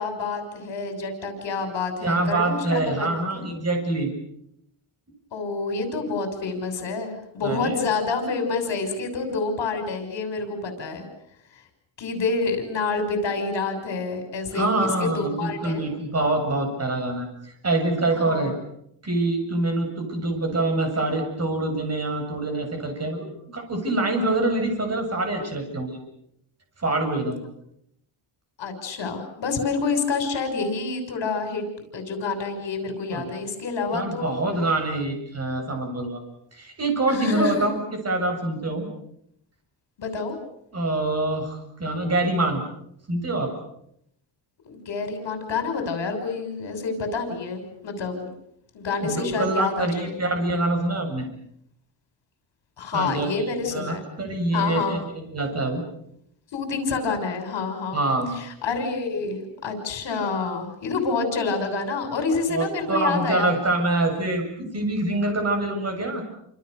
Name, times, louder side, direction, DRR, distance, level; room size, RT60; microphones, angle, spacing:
voice 1, 0.0-3.4 5.3-11.1 12.0-15.9 18.2-18.5 28.6-31.6 31.9-34.4 37.1-37.7 40.0-40.4 44.7-48.3 48.7-50.1 52.8-54.0 54.5-55.0 56.5-58.0 58.4-63.5, left 4 dB, 65° left, 7 dB, 6.4 m, -28 dB
voice 2, 2.0-4.1 7.4-7.8 14.5-17.3 17.6-18.5 19.0-26.0 26.8-27.4 33.1-33.3 33.9-36.2 36.5-37.8 38.0-38.9 40.7-42.6 43.1-43.5 49.0-51.3 52.9-55.8 57.9-58.4 62.5-66.2, right 2 dB, 30° right, 4 dB, 7.7 m, -25 dB
29.0 x 28.0 x 6.8 m, 0.74 s
wide cardioid pair, 150°, 47 cm